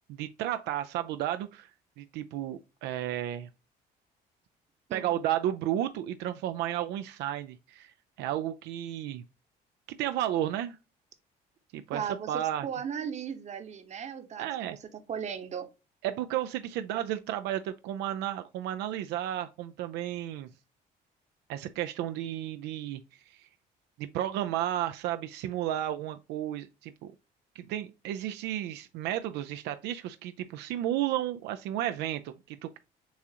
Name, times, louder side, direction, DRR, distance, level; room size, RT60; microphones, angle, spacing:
voice 1, 0.1-1.7 2.0-3.5 4.9-7.9 8.2-9.2 10.0-10.8 11.7-12.7 14.4-14.8 16.0-20.5 21.5-23.5 24.0-27.1 27.6-32.8, right 12 dB, 85° right, 0.4 m, -33 dB
voice 2, 11.9-15.7, right 7 dB, 40° right, 0.9 m, -37 dB
7.0 x 2.5 x 2.8 m
cardioid pair, 110°, 17 cm